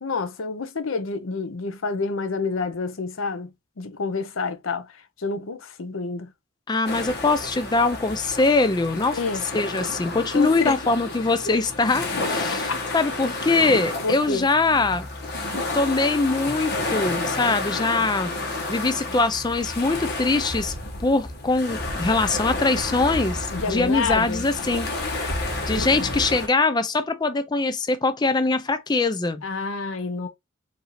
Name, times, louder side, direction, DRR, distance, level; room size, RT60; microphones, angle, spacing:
voice 1, 0.0-3.5 3.8-4.9 5.2-6.3 9.1-9.4 10.3-10.8 11.4-11.6 12.5-12.9 14.0-14.5 23.5-24.4 25.7-26.1 29.4-30.3, left 4 dB, 75° left, 0.7 m, -28 dB
voice 2, 6.7-9.2 9.5-15.1 15.7-18.3 18.7-20.7 21.0-24.9 25.7-29.4, left 3 dB, 20° left, 0.4 m, -22 dB
sound 1, 6.9-26.5, left 2 dB, 55° left, 1.1 m, -30 dB
4.8 x 2.7 x 3.1 m
head